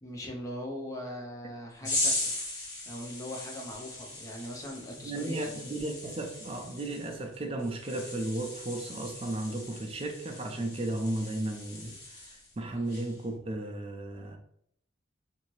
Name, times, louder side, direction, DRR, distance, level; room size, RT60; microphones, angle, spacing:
voice 1, 0.0-2.3 2.9-5.5, left 1 dB, 15° left, -1 dB, 0.6 m, -40 dB
sound 1, 1.8-12.5 12.9-13.2, left 2 dB, 60° left, 1.0 m, -38 dB
voice 2, 5.0-12.0 12.6-14.4, right 2 dB, 30° right, 3 dB, 0.4 m, -34 dB
2.7 x 2.6 x 3.0 m, 0.73 s
head